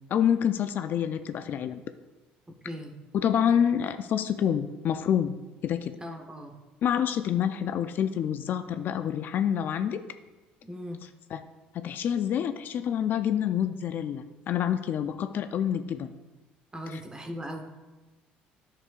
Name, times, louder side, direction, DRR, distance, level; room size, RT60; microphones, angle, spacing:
voice 1, 0.1-1.8 3.1-6.0 6.8-10.0 11.3-11.4 11.7-16.1, left 9 dB, 55° left, 10 dB, 0.4 m, -27 dB
voice 2, 2.6-3.0 6.0-6.6 10.6-11.0 16.7-17.6, equal, 20° right, 4 dB, 1.1 m, -38 dB
9.8 x 6.6 x 2.5 m, 1.2 s
supercardioid pair, 90°, 4 cm